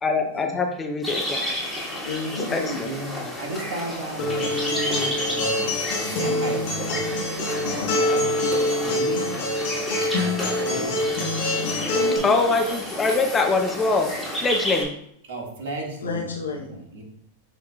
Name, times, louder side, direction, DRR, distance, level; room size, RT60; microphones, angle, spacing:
voice 1, 0.0-1.4 2.3-2.9 12.2-14.9, left 3 dB, 20° left, 4 dB, 0.5 m, -23 dB
sound 1, 1.0-14.8, left 1 dB, 5° left, 1.5 m, -31 dB
voice 2, 2.0-2.8 7.7-8.0 10.6-11.0 11.5-12.3 16.0-16.8, left 3 dB, 90° left, 0 dB, 0.8 m, -31 dB
voice 3, 2.8-5.7 5.9-7.1 7.5-8.4 8.8-9.4 10.4-11.3 15.3-16.3 16.7-17.0, right 2 dB, 65° right, 0 dB, 1.3 m, -34 dB
Acoustic guitar, 4.2-12.2, left 1 dB, 60° left, 1.2 m, -25 dB
7.0 x 2.8 x 2.3 m, 0.72 s
hypercardioid pair, 100°, 0 cm